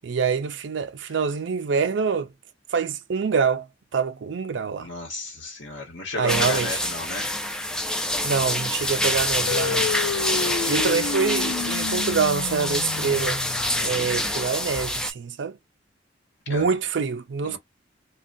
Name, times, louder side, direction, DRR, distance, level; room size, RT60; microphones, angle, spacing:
voice 1, 0.0-2.3 2.7-3.7 3.9-4.9 6.2-6.8 8.2-9.9 10.7-13.4 13.8-15.6 16.5-17.6, right 5 dB, 65° right, 0.4 m, -25 dB
voice 2, 4.8-7.4 10.4-11.0 13.8-14.1 16.5-16.7 17.4-17.6, left 2 dB, 65° left, 1.4 m, -34 dB
sound 1, 6.3-15.1, left 1 dB, 5° left, 0.4 m, -26 dB
sound 2, 9.5-14.3, left 6 dB, 85° left, 0.4 m, -31 dB
2.9 x 2.3 x 2.6 m
head